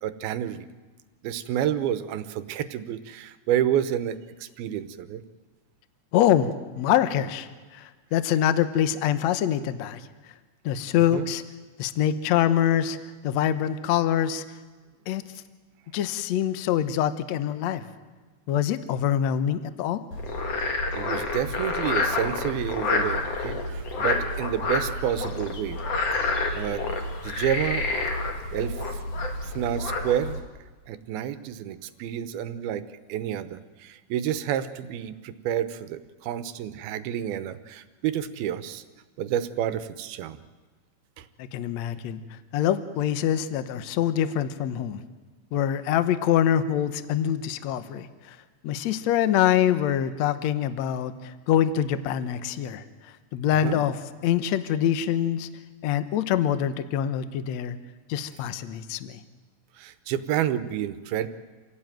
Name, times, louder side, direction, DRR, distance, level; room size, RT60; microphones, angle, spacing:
voice 1, 0.0-0.7 1.2-5.2 11.1-11.3 21.0-25.8 26.2-26.9 27.2-27.9 28.5-29.0 29.4-30.4 30.9-32.8 33.1-38.8 39.2-40.4 41.2-41.3 53.6-53.9 59.8-61.3, right 10 dB, 85° right, 12 dB, 2.8 m, -29 dB
voice 2, 6.1-10.1 10.6-11.4 11.8-13.0 13.2-14.4 15.1-15.2 15.9-17.9 18.5-20.0 41.4-45.0 45.5-48.4 48.6-55.5 55.8-57.8 58.1-59.2, left 10 dB, 70° left, 12 dB, 1.7 m, -25 dB
Frog, 20.1-30.4, left 3 dB, 45° left, 3.1 m, -28 dB
27.0 x 17.0 x 9.2 m, 1.3 s
omnidirectional pair, 4.4 m